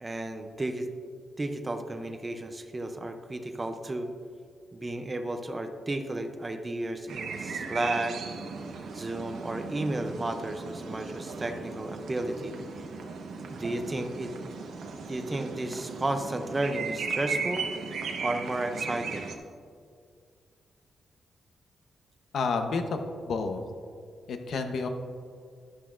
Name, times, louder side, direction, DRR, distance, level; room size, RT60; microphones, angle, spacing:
voice 1, 0.0-0.9 1.4-4.1 4.7-8.2 8.9-12.5 13.5-14.3 15.1-17.7 18.2-19.3, right 2 dB, 20° right, 7 dB, 0.5 m, -33 dB
sound 1, 7.1-19.4, right 4 dB, 75° right, 1.0 m, -37 dB
voice 2, 22.3-23.0 23.2-23.6 24.3-24.9, left 4 dB, 65° left, 6 dB, 0.8 m, -29 dB
11.5 x 11.0 x 2.5 m, 2.3 s
wide cardioid pair, 170°, 0 cm